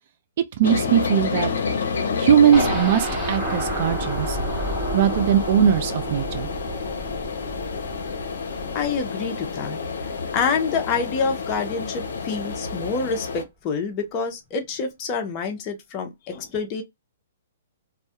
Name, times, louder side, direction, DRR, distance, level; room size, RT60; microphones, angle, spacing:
sound 1, 0.6-13.4, left 5 dB, 75° left, 0.6 m, -29 dB
voice 1, 0.6-1.5 2.2-4.4 4.9-6.5, right 9 dB, 50° right, 0.3 m, -20 dB
sound 2, 2.5-10.4 10.7-10.8 11.2-11.3, right 1 dB, 15° right, 1.1 m, -31 dB
voice 2, 8.7-9.8 10.3-16.8, left 5 dB, 30° left, 0.6 m, -27 dB
2.2 x 2.1 x 2.7 m
hypercardioid pair, 135°, 0 cm